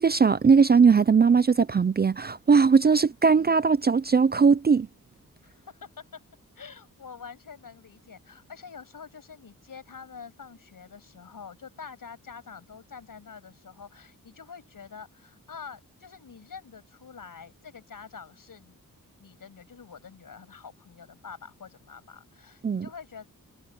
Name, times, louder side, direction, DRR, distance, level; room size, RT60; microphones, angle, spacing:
voice 1, 0.0-4.9 22.6-22.9, right 5 dB, 30° right, 0.4 m, -19 dB
voice 2, 5.4-6.2 6.5-18.8 19.2-23.3, left 6 dB, 70° left, 6.8 m, -46 dB
wide cardioid pair, 110°, 34 cm